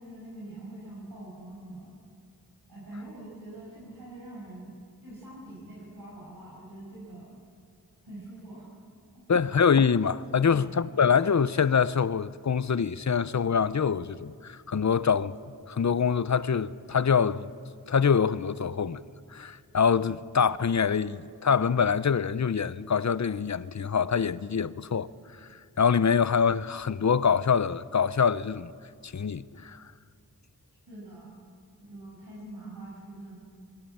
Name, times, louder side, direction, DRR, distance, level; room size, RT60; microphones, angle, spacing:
voice 1, 0.0-2.0 2.7-7.4 8.0-8.7 9.1-9.4 10.5-10.7 30.9-31.3 31.8-33.4, right 1 dB, 70° right, 6.4 m, -44 dB
voice 2, 9.3-15.4 15.7-17.5 17.9-19.0 19.3-25.1 25.4-28.7 29.0-29.8, left 6 dB, 50° left, 0.6 m, -25 dB
22.0 x 15.0 x 8.7 m
wide cardioid pair, 55°, 37 cm